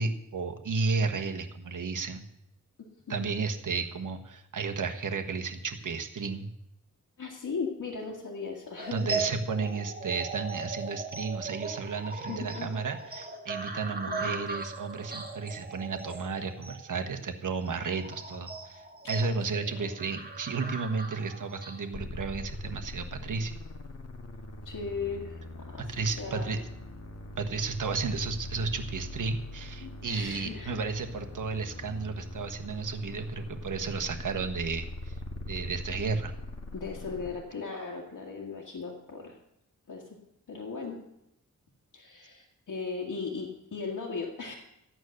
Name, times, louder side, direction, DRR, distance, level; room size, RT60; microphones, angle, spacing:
voice 1, 0.0-2.2 3.1-6.5 8.9-23.6 25.8-26.6 27.4-35.2 35.5-36.3, right 4 dB, 75° right, 5 dB, 1.4 m, -33 dB
voice 2, 7.2-9.1 12.3-12.7 14.1-14.5 19.8-19.9 24.7-26.6 29.8-30.9 36.7-39.4 39.9-40.2 40.5-41.0 41.9-44.5, left 4 dB, 90° left, -2 dB, 2.0 m, -37 dB
sound 1, 8.8-21.8, right 3 dB, 30° right, 1.9 m, -39 dB
sound 2, 21.9-37.3, left 2 dB, 50° left, 2.0 m, -42 dB
14.5 x 9.3 x 6.5 m, 0.83 s
wide cardioid pair, 95°, 31 cm